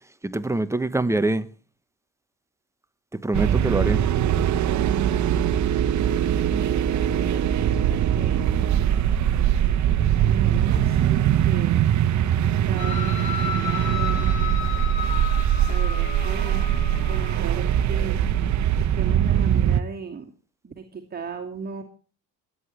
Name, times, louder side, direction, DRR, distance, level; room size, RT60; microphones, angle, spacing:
voice 1, 0.2-1.5 3.1-4.0, right 2 dB, 10° right, 1.0 m, -24 dB
voice 2, 0.8-1.2 6.4-8.5 10.2-12.1 12.7-14.4 15.7-16.6 17.1-18.2 18.9-20.3 20.6-21.8, right 5 dB, 30° right, 2.5 m, -37 dB
sound 1, 3.3-19.8, right 10 dB, 55° right, 1.1 m, -22 dB
sound 2, 12.8-17.8, left 9 dB, 85° left, 2.3 m, -33 dB
27.0 x 9.8 x 3.2 m
cardioid pair, 100°, 34 cm